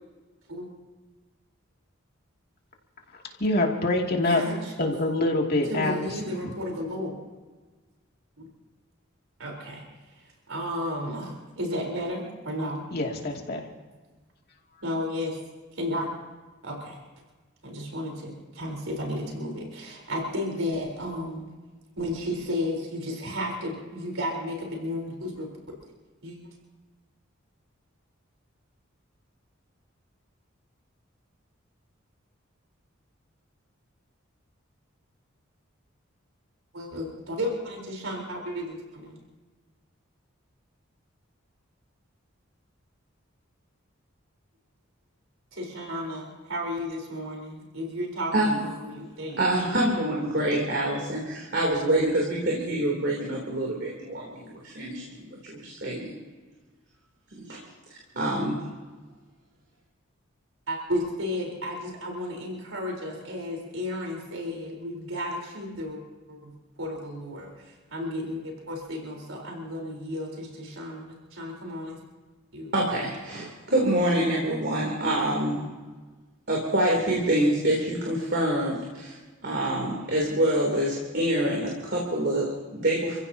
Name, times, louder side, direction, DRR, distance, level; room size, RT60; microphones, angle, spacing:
voice 1, 3.1-4.4 4.8-6.1 12.9-13.6, left 2 dB, 50° left, 0 dB, 2.5 m, -25 dB
voice 2, 4.3-4.6 5.7-7.2 8.4-8.5 9.4-9.8 10.2-12.8 14.8-15.4 15.8-16.1 16.6-17.0 17.6-21.5 22.0-25.5 26.2-26.4 36.7-39.2 45.5-49.6 60.7-66.0 66.3-66.5 66.8-72.0 72.5-72.7, left 1 dB, 90° right, 0 dB, 4.1 m, -33 dB
voice 3, 49.4-56.1 57.4-57.6 57.9-58.6 72.7-75.6 76.5-79.2 79.4-83.2, right 1 dB, 55° right, -2 dB, 3.2 m, -26 dB
29.5 x 16.0 x 2.9 m, 1.3 s
head